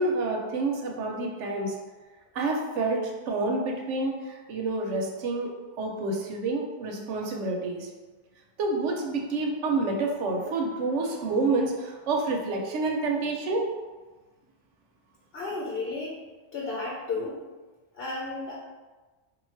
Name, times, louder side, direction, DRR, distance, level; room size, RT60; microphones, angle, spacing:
voice 1, 0.0-1.7 2.3-7.9 8.6-13.7, right 3 dB, 80° right, 1 dB, 1.0 m, -28 dB
voice 2, 15.3-16.1 16.5-17.4 17.9-18.6, left 3 dB, 60° left, -4 dB, 0.9 m, -33 dB
3.6 x 2.3 x 4.4 m, 1.3 s
omnidirectional pair, 1.2 m